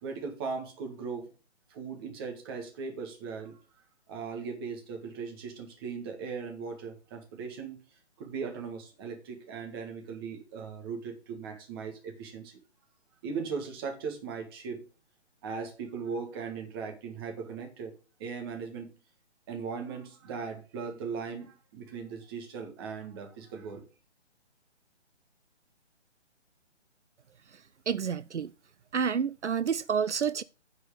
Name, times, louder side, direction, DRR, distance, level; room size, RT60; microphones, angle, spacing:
voice 1, 0.0-1.3 1.7-3.6 4.1-7.8 8.2-12.6 13.2-14.8 15.4-17.9 18.2-18.9 19.5-23.8, right 5 dB, 20° right, 1.7 m, -38 dB
voice 2, 27.9-28.5 28.9-30.4, right 7 dB, 75° right, 0.5 m, -29 dB
9.3 x 4.8 x 6.5 m
figure-of-eight pair, 140°, 35 cm